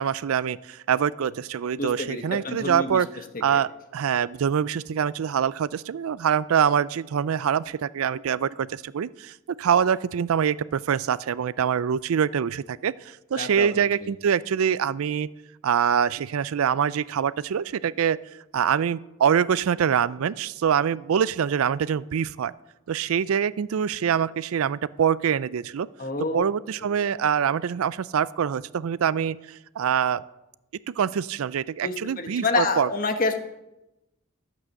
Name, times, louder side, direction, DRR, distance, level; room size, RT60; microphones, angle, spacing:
voice 1, 0.0-3.1 3.4-15.3 15.6-18.2 18.5-22.5 22.9-25.9 26.3-30.2 30.9-32.9, right 8 dB, 85° right, 19 dB, 0.4 m, -24 dB
voice 2, 1.8-3.0 3.5-3.6 13.4-13.7 14.0-14.1 26.0-26.4 31.8-33.4, left 3 dB, 40° left, 7 dB, 1.2 m, -28 dB
12.5 x 8.4 x 6.4 m, 0.95 s
head